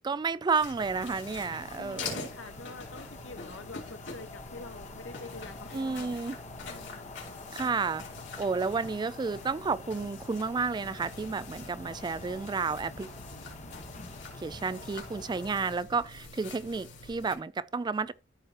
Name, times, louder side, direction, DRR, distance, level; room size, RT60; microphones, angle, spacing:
voice 1, 0.0-2.3 5.7-6.4 7.5-8.0 8.4-13.1 14.4-18.1, right 4 dB, 25° right, 0.3 m, -31 dB
sound 1, 0.6-17.4, left 3 dB, 70° left, 3.1 m, -45 dB
sound 2, 0.7-15.8, left 3 dB, 40° left, 1.2 m, -47 dB
voice 2, 1.8-6.3 6.6-7.1, left 3 dB, 90° left, 1.0 m, -46 dB
14.0 x 4.8 x 2.9 m
head